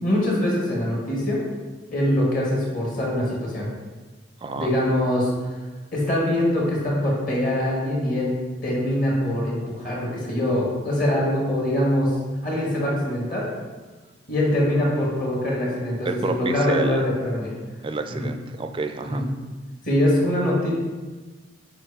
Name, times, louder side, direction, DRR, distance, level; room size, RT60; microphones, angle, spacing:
voice 1, 0.0-1.4 1.9-3.7 4.6-5.3 5.9-8.3 8.6-12.1 12.4-13.5 14.3-17.5 19.0-19.2 19.8-20.7, left 1 dB, 45° left, -4 dB, 1.7 m, -23 dB
voice 2, 4.4-4.7 16.0-17.0 17.8-19.3, right 3 dB, 25° right, 7 dB, 0.3 m, -28 dB
7.6 x 2.6 x 4.8 m, 1.3 s
head